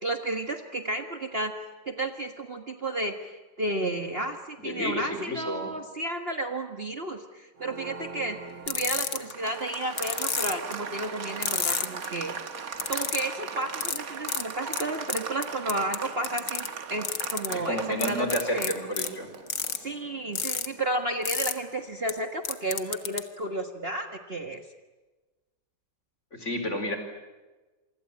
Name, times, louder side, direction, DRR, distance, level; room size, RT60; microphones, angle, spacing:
voice 1, 0.0-8.4 8.7-12.4 12.9-18.7 19.7-24.6, right 2 dB, 35° right, 5 dB, 1.7 m, -32 dB
voice 2, 4.6-5.7 17.5-19.3 26.3-27.0, equal, 40° left, 6 dB, 4.7 m, -31 dB
Applause, 7.6-21.9, right 6 dB, 55° right, 1.8 m, -39 dB
sound 1, 8.7-9.3 10.0-10.7 11.4-12.1 12.8-13.3 13.8-14.0 14.3-14.4 14.7-14.8 15.1-16.0 16.2-16.7 17.0-17.5 18.0-19.1 19.5-19.8 20.4-20.7 21.3-21.5 22.1-22.2 22.4-23.2, left 7 dB, 75° left, 2.2 m, -29 dB
27.5 x 24.5 x 8.7 m, 1.2 s
omnidirectional pair, 1.9 m